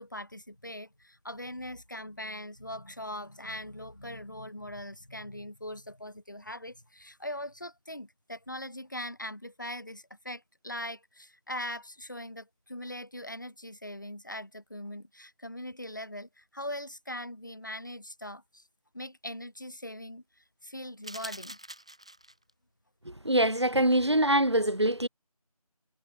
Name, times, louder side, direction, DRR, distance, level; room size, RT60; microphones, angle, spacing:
voice 1, 0.0-18.6 18.9-21.6, left 1 dB, 30° left, 6.6 m, -41 dB
sound 1, 21.0-22.5, right 1 dB, 10° right, 3.7 m, -44 dB
voice 2, 23.0-25.1, right 1 dB, 45° right, 1.7 m, -24 dB
figure-of-eight pair, 180°, 19 cm